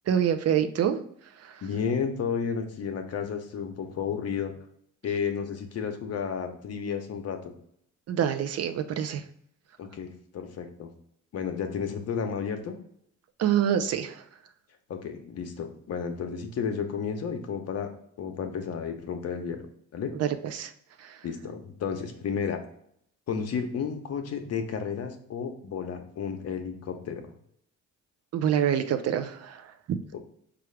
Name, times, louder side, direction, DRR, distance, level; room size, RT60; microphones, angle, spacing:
voice 1, 0.1-1.0 1.4-1.6 8.1-9.2 13.4-14.2 20.2-20.7 21.0-21.2 28.3-30.0, right 9 dB, 55° right, 9 dB, 0.5 m, -26 dB
voice 2, 1.6-4.5 5.0-7.4 9.8-10.9 11.3-12.7 14.9-17.9 18.2-19.6 19.9-20.2 21.2-22.6 23.3-27.3 30.1-30.2, left 6 dB, 55° left, 5 dB, 0.7 m, -32 dB
4.6 x 2.4 x 3.1 m, 0.68 s
cardioid pair, 90°, 30 cm